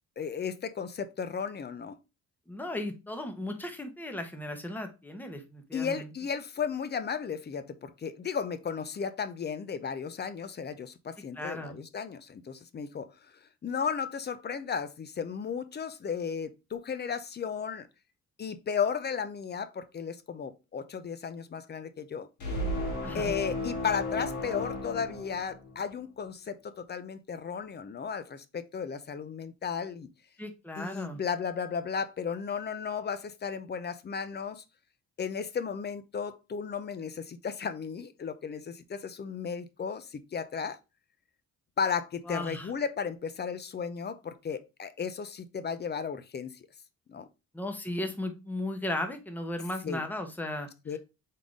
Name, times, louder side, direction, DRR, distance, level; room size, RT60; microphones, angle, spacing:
voice 1, 0.2-2.0 5.7-13.1 13.6-17.9 18.4-22.3 23.1-30.1 30.8-34.6 35.2-40.8 41.8-46.6 47.1-47.3 49.8-50.0 50.9-51.0, left 6 dB, 35° left, 0.6 m, -34 dB
voice 2, 2.5-6.1 11.3-11.8 23.0-23.3 30.4-31.2 42.3-42.7 47.5-51.0, left 1 dB, 5° left, 0.9 m, -36 dB
sound 1, 22.4-25.9, left 1 dB, 70° left, 2.2 m, -34 dB
3.8 x 3.7 x 3.6 m
cardioid pair, 90°, 30 cm